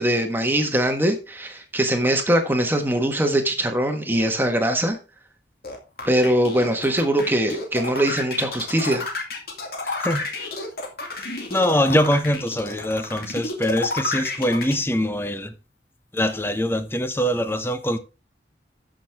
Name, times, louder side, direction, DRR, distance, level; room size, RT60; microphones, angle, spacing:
voice 1, 0.0-5.0 6.0-9.0, right 1 dB, 10° right, 1.4 m, -22 dB
sound 1, 5.6-14.7, left 2 dB, 55° left, 2.4 m, -30 dB
voice 2, 9.8-10.2 11.2-15.5 16.1-18.0, equal, 15° left, 0.8 m, -23 dB
12.5 x 6.3 x 3.5 m
head